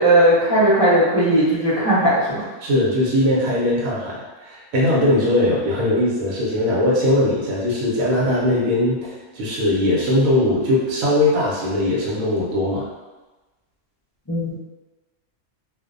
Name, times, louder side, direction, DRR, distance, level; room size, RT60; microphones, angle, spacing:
voice 1, 0.0-2.4 14.3-14.6, right 1 dB, 35° left, -12 dB, 0.3 m, -17 dB
voice 2, 2.6-12.9, left 1 dB, 70° right, -5 dB, 1.0 m, -20 dB
2.5 x 2.1 x 2.4 m, 1.2 s
omnidirectional pair, 1.6 m